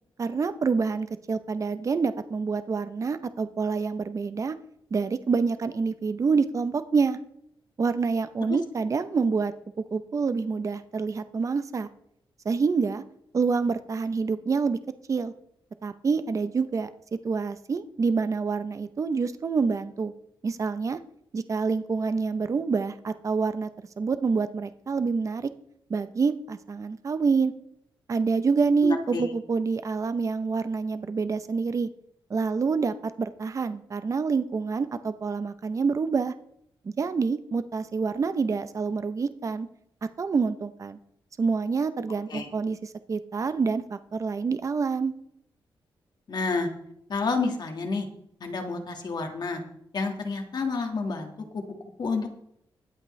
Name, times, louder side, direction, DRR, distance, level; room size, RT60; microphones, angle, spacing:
voice 1, 0.2-4.6 4.9-7.2 7.8-9.5 9.9-11.9 12.4-13.0 13.3-14.8 15.1-15.3 15.8-16.9 17.2-20.1 20.4-21.0 21.3-23.7 24.0-25.5 25.9-27.5 28.1-31.9 32.3-36.3 36.8-39.7 40.2-41.0 41.4-45.1, right 4 dB, 35° right, 12 dB, 0.6 m, -27 dB
voice 2, 28.8-29.2 42.3-42.5 46.3-46.7 47.1-48.1 48.4-49.6 49.9-51.6 52.0-52.3, left 4 dB, 50° left, 4 dB, 1.7 m, -29 dB
21.5 x 8.1 x 3.2 m, 0.74 s
wide cardioid pair, 135°, 9 cm